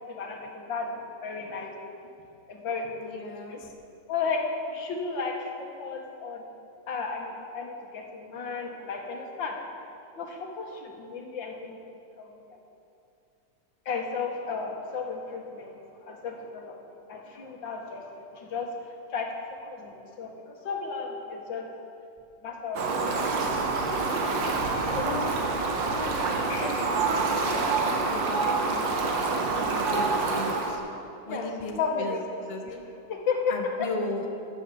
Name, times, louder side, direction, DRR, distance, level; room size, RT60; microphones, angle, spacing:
voice 1, 0.0-1.7 2.5-3.6 4.1-6.5 6.9-9.6 10.2-11.8 12.2-12.6 13.9-15.7 16.0-16.8 17.1-18.7 19.1-21.7 22.4-23.5 24.7-25.5 26.5-27.3 31.3-32.4 32.6-32.8 33.1-33.9, left 4 dB, 85° left, 1 dB, 2.2 m, -34 dB
voice 2, 3.0-3.7 25.0-25.3 25.8-30.8 31.3-32.2 32.5-32.6 33.5-34.3, left 2 dB, 25° left, 3 dB, 0.9 m, -37 dB
Fowl, 22.7-30.8, right 3 dB, 90° right, 1.9 m, -27 dB
13.0 x 8.3 x 7.0 m, 2.7 s
omnidirectional pair, 2.0 m